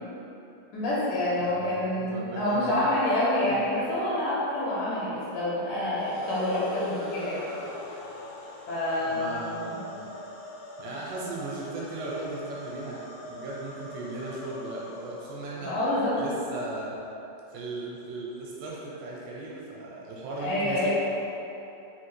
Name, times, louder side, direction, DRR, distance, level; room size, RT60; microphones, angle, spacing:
voice 1, 0.7-7.5 8.7-9.8 15.6-16.2 20.4-20.9, left 1 dB, 75° left, -8 dB, 2.2 m, -27 dB
voice 2, 1.4-2.9 9.0-10.1 10.8-15.7 16.1-17.0 17.5-20.9, right 2 dB, 80° right, -4 dB, 2.2 m, -37 dB
sound 1, 5.9-16.2, left 2 dB, 90° left, 2.5 m, -42 dB
5.5 x 2.6 x 3.1 m, 2.9 s
omnidirectional pair, 4.1 m